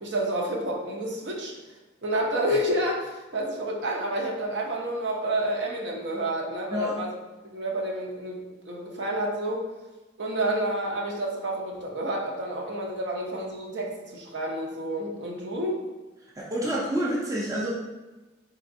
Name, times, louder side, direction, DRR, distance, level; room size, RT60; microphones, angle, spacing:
voice 1, 0.0-1.5 2.0-7.1 7.5-9.6 10.2-15.8, right 1 dB, 60° right, -2 dB, 0.7 m, -29 dB
voice 2, 16.4-17.7, equal, 15° right, -5 dB, 0.5 m, -28 dB
4.1 x 3.4 x 2.6 m, 1.1 s
head